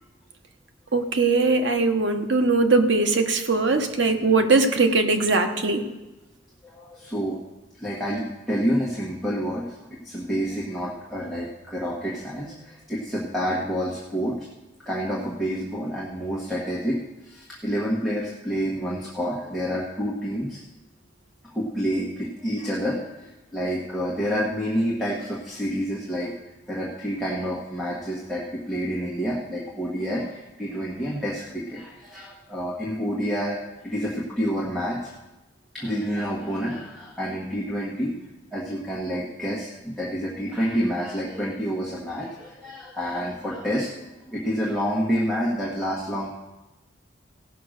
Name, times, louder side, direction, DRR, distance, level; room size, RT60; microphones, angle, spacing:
voice 1, 0.9-5.8, right 3 dB, 80° right, 6 dB, 1.1 m, -20 dB
voice 2, 6.6-7.4 7.8-14.5 14.8-17.0 17.2-20.6 21.5-26.3 26.7-33.6 33.8-35.1 35.7-38.1 38.5-46.4, equal, ahead, -4 dB, 1.5 m, -28 dB
16.5 x 5.8 x 6.5 m, 1.1 s
head